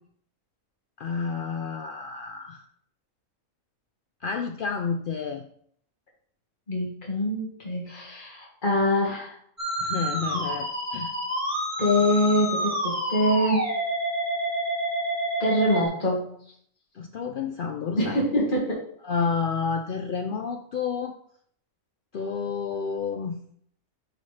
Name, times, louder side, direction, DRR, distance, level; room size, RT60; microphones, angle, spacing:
voice 1, 1.0-2.6 4.2-5.4 9.8-11.1 16.9-18.3 19.0-21.2 22.1-23.4, left 5 dB, 75° left, 5 dB, 0.5 m, -30 dB
voice 2, 6.7-9.4 11.8-13.7 15.4-16.3 18.0-18.9, left 1 dB, 35° left, -3 dB, 1.9 m, -24 dB
Musical instrument, 9.6-15.9, right 1 dB, 10° right, 1.6 m, -28 dB
10.0 x 4.2 x 3.2 m, 0.65 s
omnidirectional pair, 1.4 m